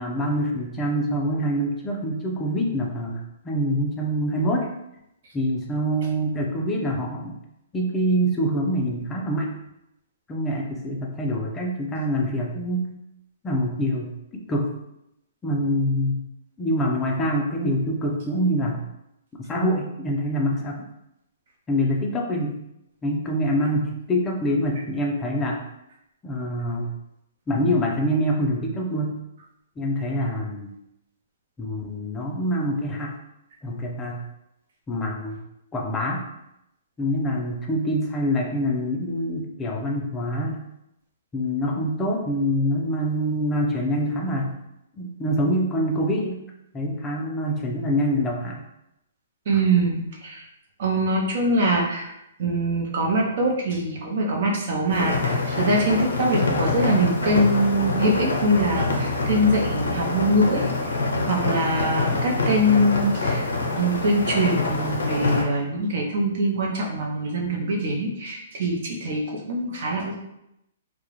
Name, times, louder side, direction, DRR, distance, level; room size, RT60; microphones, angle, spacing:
voice 1, 0.0-4.7 5.3-7.3 7.7-9.5 10.3-12.9 13.4-14.7 15.4-16.2 16.6-18.8 19.4-20.9 21.7-22.5 23.0-25.6 26.2-26.9 27.5-29.2 29.8-30.7 31.6-33.1 33.6-34.2 34.9-35.4 35.7-36.3 37.0-40.6 41.3-44.6 45.0-46.4 46.7-48.6, equal, 15° left, 0 dB, 0.4 m, -25 dB
voice 2, 49.5-50.4 50.8-52.1 52.4-70.2, right 1 dB, 55° right, -1 dB, 0.6 m, -23 dB
sound 1, 54.9-65.4, left 3 dB, 80° left, 0.5 m, -25 dB
2.3 x 2.0 x 2.9 m, 0.83 s
hypercardioid pair, 135°, 0 cm